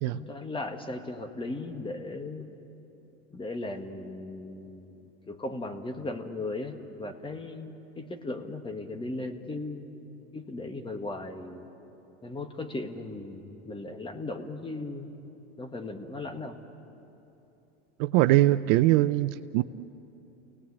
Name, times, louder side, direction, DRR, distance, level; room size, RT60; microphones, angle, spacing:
voice 1, 0.0-2.5 3.3-9.9 10.3-11.7 12.2-15.1 15.6-16.6, left 2 dB, 15° left, 6 dB, 1.8 m, -37 dB
voice 2, 18.0-19.6, right 16 dB, 55° right, 12 dB, 0.6 m, -22 dB
29.0 x 18.5 x 8.4 m, 3.0 s
hypercardioid pair, 105°, 34 cm